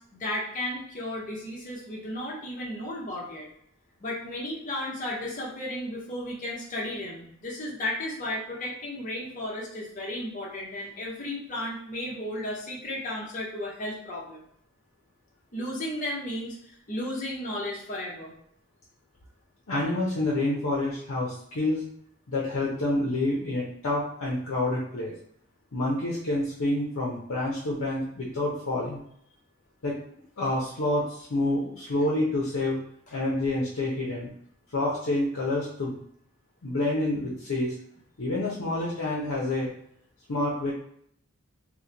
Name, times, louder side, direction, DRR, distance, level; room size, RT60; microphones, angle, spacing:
voice 1, 0.0-3.5 4.0-14.4 15.5-16.6 16.9-18.3, left 1 dB, 35° left, -4 dB, 0.8 m, -34 dB
voice 2, 19.7-21.8 22.3-25.1 25.7-29.0 29.8-30.0 30.4-32.8 33.1-34.3 34.7-36.0 36.6-37.7 38.2-39.7 40.3-40.7, left 2 dB, 75° left, -4 dB, 0.7 m, -28 dB
2.9 x 2.1 x 3.8 m, 0.69 s
head